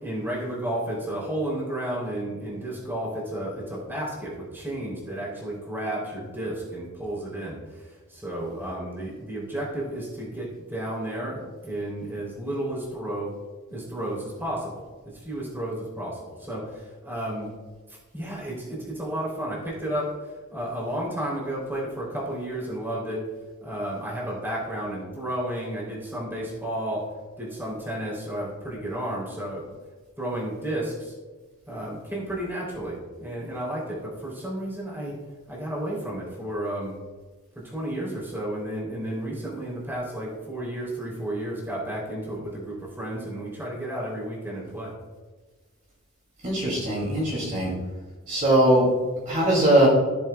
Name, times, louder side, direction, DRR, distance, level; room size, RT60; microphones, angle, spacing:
voice 1, 0.0-13.4 13.7-14.8 15.1-17.5 17.9-23.2 23.6-27.1 27.4-29.6 30.2-31.1 31.7-35.1 35.5-37.0 37.5-44.9, right 1 dB, 10° right, -5 dB, 3.0 m, -32 dB
voice 2, 46.4-47.7 48.3-48.9 49.3-49.9, right 1 dB, 35° right, -4 dB, 2.4 m, -20 dB
15.0 x 7.2 x 2.2 m, 1.3 s
head